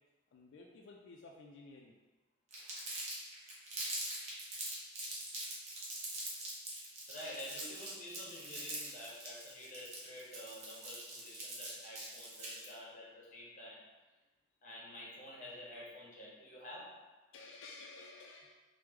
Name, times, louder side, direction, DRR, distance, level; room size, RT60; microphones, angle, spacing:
voice 1, 0.3-1.9 11.8-12.3 12.5-12.7 13.0-13.1 17.3-18.5, left 3 dB, 85° left, 0 dB, 0.3 m, -54 dB
Crumpling crinkling, 2.5-12.7, right 2 dB, 35° right, 0.7 m, -43 dB
voice 2, 7.1-13.8 14.6-17.0, left 1 dB, 40° left, -5 dB, 0.8 m, -49 dB
3.1 x 2.0 x 3.5 m, 1.2 s
head